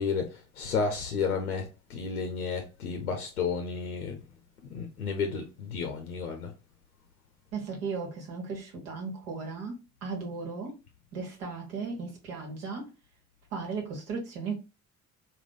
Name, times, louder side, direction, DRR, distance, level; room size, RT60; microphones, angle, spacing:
voice 1, 0.0-4.2 4.7-6.5, left 5 dB, 85° left, 0.5 m, -32 dB
voice 2, 7.5-10.8 11.1-12.9 13.5-14.6, right 4 dB, 70° right, 1.1 m, -36 dB
3.6 x 2.2 x 3.5 m
figure-of-eight pair, 50°, 43 cm